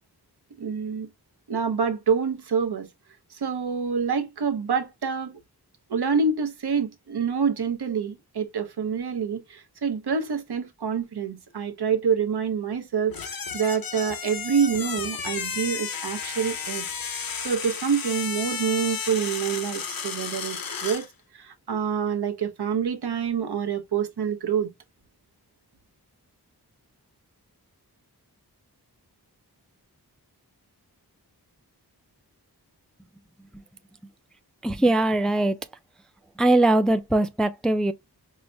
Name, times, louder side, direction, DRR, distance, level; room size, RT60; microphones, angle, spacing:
voice 1, 0.6-1.1 1.5-2.9 3.3-5.4 5.9-13.2 13.5-21.1 21.3-24.7, right 6 dB, 80° right, 0.7 m, -27 dB
sound 1, 13.1-21.1, left 6 dB, 60° left, 0.6 m, -33 dB
voice 2, 34.6-35.6 36.4-37.9, right 2 dB, ahead, 0.3 m, -21 dB
4.7 x 2.1 x 2.6 m
wide cardioid pair, 60°, 39 cm